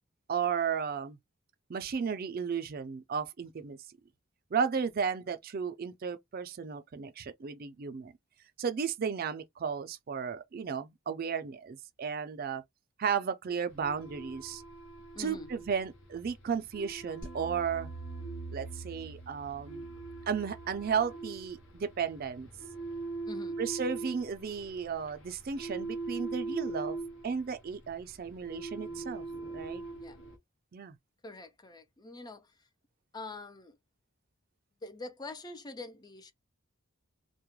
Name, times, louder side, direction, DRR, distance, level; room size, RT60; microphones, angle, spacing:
voice 1, 0.3-1.2 1.7-3.8 4.5-8.1 8.6-12.6 13.0-14.6 15.2-17.9 18.5-19.9 20.3-22.5 23.6-27.0 27.2-29.2 29.5-29.8 30.7-31.0, right 6 dB, 45° right, 0.4 m, -34 dB
sound 1, 13.7-30.4, right 3 dB, 70° left, 0.9 m, -42 dB
voice 2, 15.1-15.5 23.2-23.6 30.0-30.2 31.2-32.5 33.1-33.8 34.8-36.3, left 3 dB, 20° left, 0.4 m, -44 dB
sound 2, 17.2-22.4, right 3 dB, 85° left, 1.2 m, -46 dB
2.3 x 2.1 x 3.0 m
head